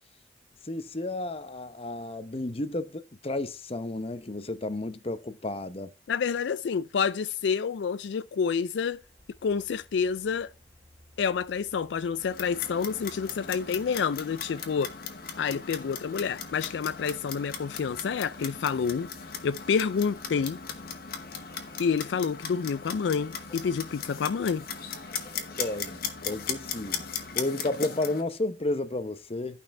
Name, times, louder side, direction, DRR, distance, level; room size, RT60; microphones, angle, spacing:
voice 1, 0.6-5.9 25.6-27.0 27.3-29.6, left 2 dB, 35° left, 0.8 m, -32 dB
voice 2, 6.1-9.0 9.4-10.5 11.2-14.9 15.4-19.1 19.4-20.6 21.8-24.7, left 6 dB, 75° left, 0.4 m, -28 dB
sound 1, 8.9-27.4, left 1 dB, 10° left, 2.2 m, -57 dB
Clock, 12.2-28.2, left 6 dB, 55° left, 1.6 m, -38 dB
13.0 x 5.5 x 4.3 m
head